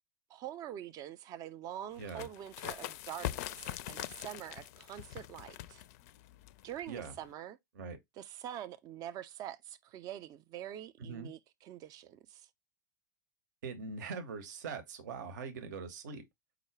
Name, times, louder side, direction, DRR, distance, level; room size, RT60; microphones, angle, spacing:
voice 1, 0.3-5.8 6.6-7.6 8.2-12.5, right 11 dB, 35° right, 0.4 m, -45 dB
sound 1, 2.0-7.3, left 14 dB, 55° left, 0.4 m, -43 dB
voice 2, 2.0-2.3 6.9-7.1 7.7-8.0 11.0-11.3 13.6-16.2, right 5 dB, 65° right, 0.8 m, -42 dB
4.8 x 2.1 x 3.2 m
figure-of-eight pair, 90°, 10 cm